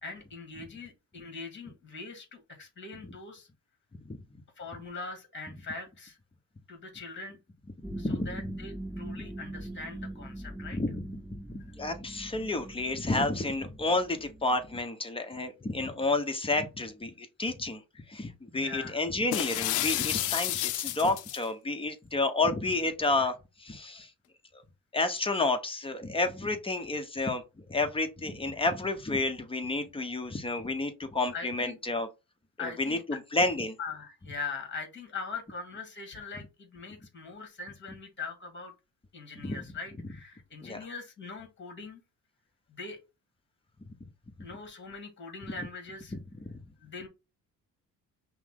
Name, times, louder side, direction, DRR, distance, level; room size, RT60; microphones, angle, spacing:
voice 1, 0.0-3.5 4.6-6.2 6.7-7.4 8.0-10.8 18.5-19.0 31.3-31.8 32.6-33.2 33.8-38.7 39.1-42.0 42.7-43.0 44.4-46.2 46.8-47.1, left 4 dB, 40° left, 1.7 m, -42 dB
sound 1, 7.8-14.7, right 1 dB, 5° right, 0.5 m, -42 dB
voice 2, 7.9-8.3 10.8-11.0 11.8-17.8 18.1-24.1 24.9-32.1 32.6-33.7 39.4-39.6 40.6-40.8 46.5-46.6, left 2 dB, 20° left, 0.9 m, -30 dB
sound 2, 19.3-21.4, left 15 dB, 80° left, 0.5 m, -30 dB
5.6 x 2.1 x 3.7 m
cardioid pair, 90°, 30 cm